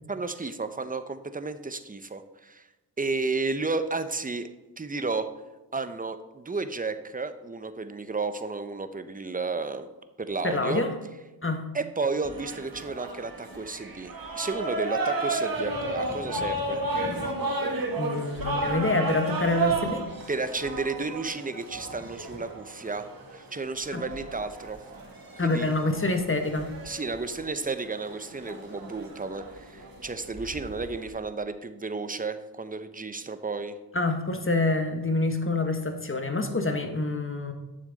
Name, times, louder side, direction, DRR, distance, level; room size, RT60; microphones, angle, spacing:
voice 1, 0.1-2.7 3.0-4.5 4.8-5.3 5.7-9.9 10.2-10.8 11.7-16.8 20.3-24.8 25.4-25.7 26.8-33.8, right 3 dB, 20° right, 10 dB, 0.8 m, -32 dB
voice 2, 10.4-10.9 11.4-11.6 18.0-20.0 23.9-24.0 25.4-26.7 33.9-37.5, left 2 dB, 30° left, 5 dB, 1.4 m, -26 dB
sound 1, 12.2-31.1, right 2 dB, 55° right, 1.8 m, -33 dB
sound 2, 15.5-20.5 20.7-21.4 21.6-22.4 22.7-23.1, equal, 70° left, 2.2 m, -44 dB
9.5 x 6.9 x 4.0 m, 1.1 s
cardioid pair, 45°, 42 cm